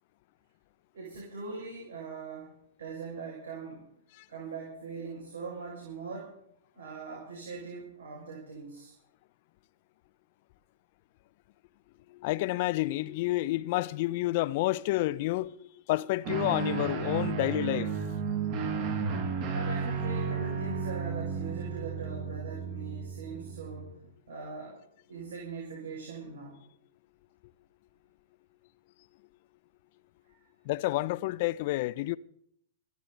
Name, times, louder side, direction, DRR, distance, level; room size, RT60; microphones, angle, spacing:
voice 1, 0.9-2.5 2.8-3.9 4.3-6.4 6.7-8.9 19.5-23.9 24.3-24.8 25.1-26.6 30.3-30.4, right 4 dB, 75° right, 6.0 m, -41 dB
voice 2, 12.1-18.0 30.6-32.2, left 18 dB, 50° left, 0.7 m, -29 dB
Guitar, 16.2-23.9, right 5 dB, 45° right, 5.9 m, -33 dB
26.0 x 11.0 x 4.0 m
hypercardioid pair, 110°, 0 cm